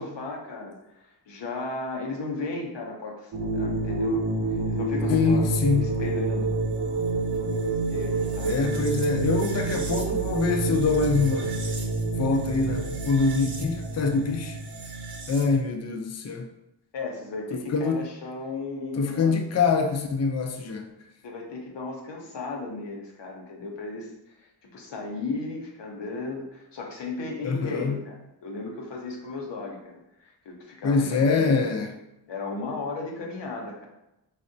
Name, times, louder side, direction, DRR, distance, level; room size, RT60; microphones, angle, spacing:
voice 1, 0.0-4.3 4.7-5.5 5.8-6.5 7.9-8.5 16.9-19.3 21.2-31.7 32.3-33.9, left 3 dB, 90° left, 0.7 m, -35 dB
sound 1, 3.3-15.6, right 3 dB, 65° right, 0.6 m, -28 dB
voice 2, 5.1-6.0 8.5-11.5 12.2-14.6 15.3-16.5 17.5-18.0 19.0-20.9 27.4-28.0 30.8-31.9, left 4 dB, 40° left, 0.4 m, -24 dB
3.4 x 2.1 x 2.6 m
cardioid pair, 50°, 41 cm